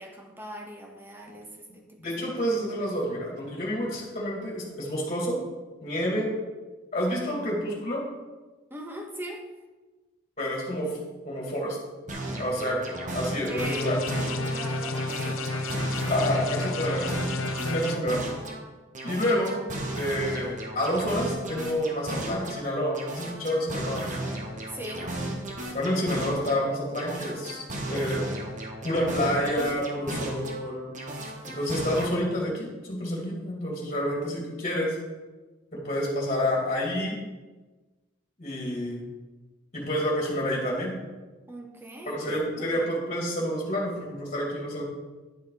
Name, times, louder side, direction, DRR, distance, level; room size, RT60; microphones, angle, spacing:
voice 1, 0.0-2.2 8.7-9.5 12.3-12.5 13.3-13.9 14.3-16.0 24.7-25.2 41.5-42.2 42.6-42.8, right 1 dB, 10° right, 2 dB, 1.3 m, -40 dB
voice 2, 2.0-5.4 5.8-6.3 6.9-8.0 10.4-11.8 12.4-14.0 16.1-17.2 17.6-18.3 19.0-19.6 19.9-24.3 25.7-28.3 28.8-30.9 31.5-35.0 35.7-37.2 38.4-39.0 39.7-41.0 42.1-44.8, equal, 30° left, -2 dB, 2.5 m, -29 dB
sound 1, 12.1-14.6 14.9-18.6 18.9-22.6 22.9-26.6 26.9-30.6 30.9-32.1, right 1 dB, 40° right, 1.5 m, -35 dB
sound 2, 13.6-18.0, left 2 dB, 80° left, 0.8 m, -31 dB
11.0 x 6.7 x 4.9 m, 1.2 s
head